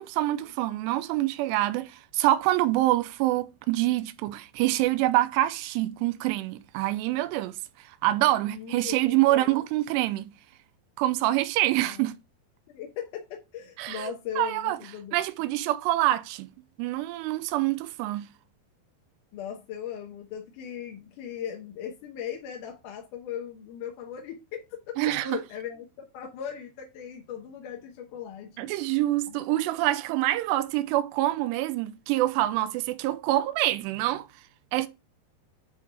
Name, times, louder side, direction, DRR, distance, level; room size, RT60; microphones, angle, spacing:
voice 1, 0.0-10.3 11.0-12.2 13.8-14.8 15.1-16.5 16.8-18.3 25.0-25.4 28.6-34.3 34.7-34.9, right 16 dB, 85° right, 2.7 m, -26 dB
voice 2, 8.5-9.6 11.8-12.1 12.7-15.2 19.3-28.7 29.3-29.4, left 9 dB, 65° left, 2.1 m, -38 dB
10.5 x 3.5 x 4.7 m
omnidirectional pair, 4.9 m